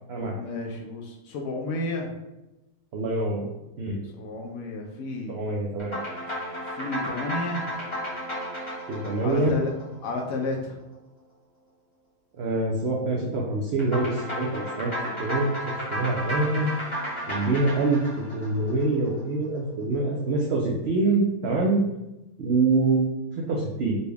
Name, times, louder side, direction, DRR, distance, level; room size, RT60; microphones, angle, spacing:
voice 1, 0.1-2.1 4.0-5.4 6.6-7.7 9.2-9.7 10.0-10.8, left 2 dB, 70° left, 1 dB, 0.9 m, -32 dB
voice 2, 2.9-3.5 3.8-4.0 5.3-6.0 8.9-9.6 12.4-14.9 15.2-15.5 15.9-16.7 17.3-21.8 22.4-23.0 23.4-24.0, right 2 dB, 75° right, -2 dB, 0.6 m, -25 dB
sound 1, 5.8-10.5 13.8-19.2, equal, 20° left, 1.0 m, -33 dB
3.9 x 2.3 x 3.3 m, 0.95 s
omnidirectional pair, 1.7 m